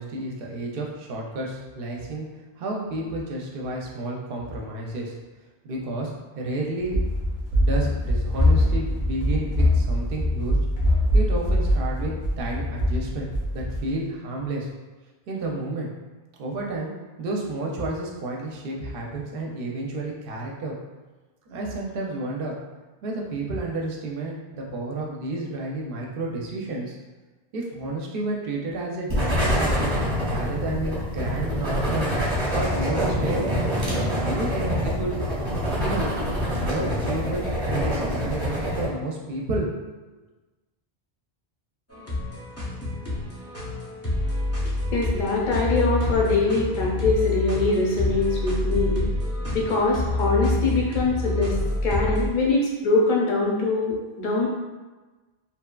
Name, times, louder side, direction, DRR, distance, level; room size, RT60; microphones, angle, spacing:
voice 1, 0.0-2.3 2.6-5.1 5.6-7.1 7.5-10.6 11.1-14.7 15.3-15.9 16.4-16.9 17.2-20.8 21.5-22.5 23.0-27.0 27.5-30.0 30.2-32.1 32.5-33.5 34.1-35.1 35.7-36.1 36.6-39.7, right 2 dB, 65° right, -1 dB, 0.7 m, -31 dB
Run, 6.8-13.9, left 1 dB, 80° left, 1.0 m, -23 dB
sound 1, 29.1-38.9, equal, 30° right, 0.8 m, -25 dB
sound 2, 41.9-52.3, left 2 dB, 20° left, 0.4 m, -27 dB
voice 2, 44.9-49.0 49.5-51.5 51.8-54.5, left 3 dB, 55° left, -3 dB, 0.7 m, -23 dB
2.9 x 2.3 x 2.2 m, 1.2 s
omnidirectional pair, 1.1 m